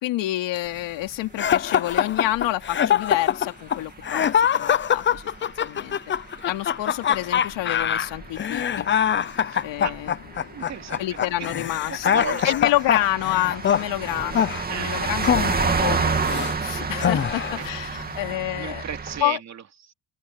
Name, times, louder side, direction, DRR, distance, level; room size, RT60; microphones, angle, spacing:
voice 1, 0.0-6.0 6.4-8.9 9.6-10.1 11.0-18.8 19.2-19.4, left 15 dB, 80° left, 3.6 m, -28 dB
sound 1, 0.7-19.2, right 5 dB, 20° right, 2.5 m, -31 dB
sound 2, 1.4-16.6 17.0-17.7, left 8 dB, 25° left, 0.6 m, -24 dB
sound 3, 7.5-14.4, left 12 dB, 60° left, 5.8 m, -49 dB
voice 2, 9.3-10.0 10.5-11.5 11.9-12.5 14.7-15.1 17.3-17.6 18.1-18.2 18.6-19.9, right 8 dB, 40° right, 2.8 m, -36 dB
cardioid pair, 140°, 43 cm